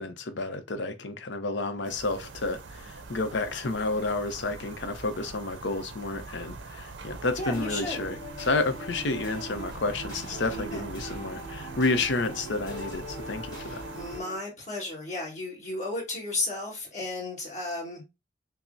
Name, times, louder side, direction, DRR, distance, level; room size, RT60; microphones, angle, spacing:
voice 1, 0.0-13.8, left 3 dB, 70° left, 0.6 m, -30 dB
sound 1, 1.8-14.2, right 3 dB, 80° right, 0.6 m, -43 dB
voice 2, 7.4-8.0 10.5-10.8 13.9-18.0, left 2 dB, 40° left, 1.6 m, -34 dB
sound 2, 7.5-14.4, right 1 dB, 20° left, 2.0 m, -41 dB
5.7 x 2.0 x 2.6 m
head